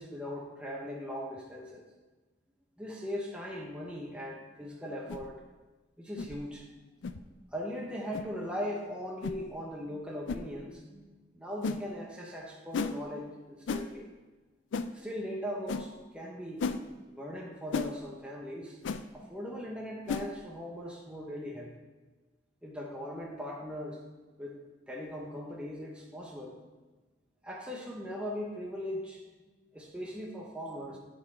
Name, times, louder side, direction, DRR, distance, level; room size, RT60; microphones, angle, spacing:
voice 1, 0.0-1.9 2.8-5.4 6.0-6.6 7.5-14.1 14.9-16.7 17.1-18.8 19.1-21.7 22.6-24.0 24.4-24.6 24.9-26.6 27.4-29.2 29.7-31.0, equal, 5° right, -2 dB, 0.8 m, -39 dB
sound 1, 5.1-5.3 6.2-6.4 7.0-7.2 8.1-8.3 9.2-9.4 10.3-10.4 11.6-11.8 12.7-13.0 13.7-13.9 14.7-14.9 15.7-15.9 16.6-16.8 17.7-17.9 18.8-19.0 20.1-20.3, left 5 dB, 80° left, 0.4 m, -33 dB
8.8 x 4.2 x 4.3 m, 1.3 s
head